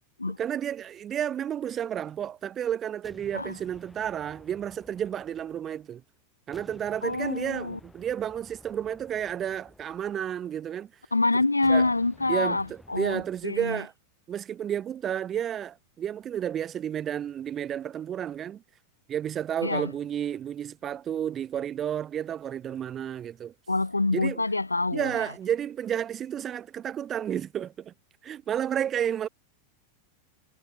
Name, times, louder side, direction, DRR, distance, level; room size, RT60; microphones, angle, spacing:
voice 1, 0.4-6.0 6.5-10.9 11.7-11.9 12.3-13.9 14.3-18.6 19.1-23.5 24.1-24.4 24.9-27.9 28.2-29.3, right 9 dB, 25° right, 0.3 m, -31 dB
sound 1, 3.0-6.1 6.5-10.8 11.6-13.7, left 2 dB, 5° left, 3.0 m, -54 dB
voice 2, 7.0-7.8 11.1-13.8 19.6-19.9 23.7-25.2, left 2 dB, 80° left, 0.4 m, -26 dB
figure-of-eight pair, 90°, 0 cm